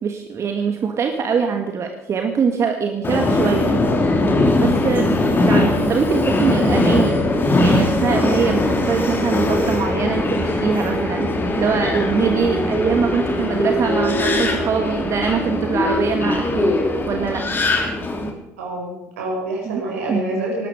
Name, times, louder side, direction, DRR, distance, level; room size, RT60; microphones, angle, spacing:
voice 1, 0.0-3.8 4.6-5.1 5.4-7.3 7.6-11.3 11.6-16.7 17.1-17.5 19.6-19.8 20.1-20.5, right 6 dB, 35° right, 5 dB, 1.7 m, -23 dB
Subway metro underground, 3.0-18.3, left 2 dB, 25° left, 3.1 m, -20 dB
voice 2, 18.6-20.7, right 1 dB, 70° right, -1 dB, 5.9 m, -27 dB
20.0 x 12.5 x 5.0 m, 0.90 s
figure-of-eight pair, 60°, 8 cm